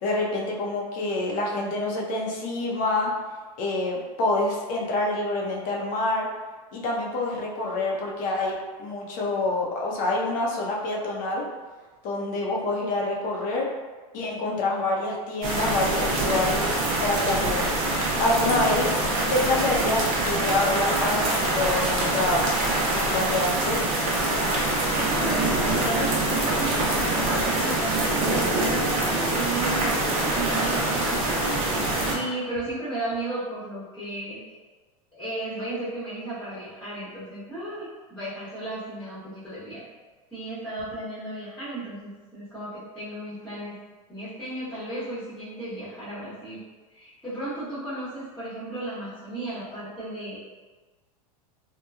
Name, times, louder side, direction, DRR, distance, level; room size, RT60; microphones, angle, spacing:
voice 1, 0.0-3.1 3.6-6.3 6.7-11.4 12.0-13.7 14.1-17.6 18.2-19.0 19.3-22.5 22.9-23.8, left 2 dB, 45° left, -2 dB, 0.6 m, -27 dB
sound 1, 15.4-32.1, right 2 dB, 45° right, 0.7 m, -24 dB
voice 2, 24.9-30.0 30.3-31.6 32.0-34.4 35.1-39.8 40.3-43.8 44.1-46.6 46.9-50.4, right 2 dB, 5° left, -13 dB, 1.0 m, -34 dB
2.9 x 2.2 x 2.3 m, 1.3 s
supercardioid pair, 115°, 19 cm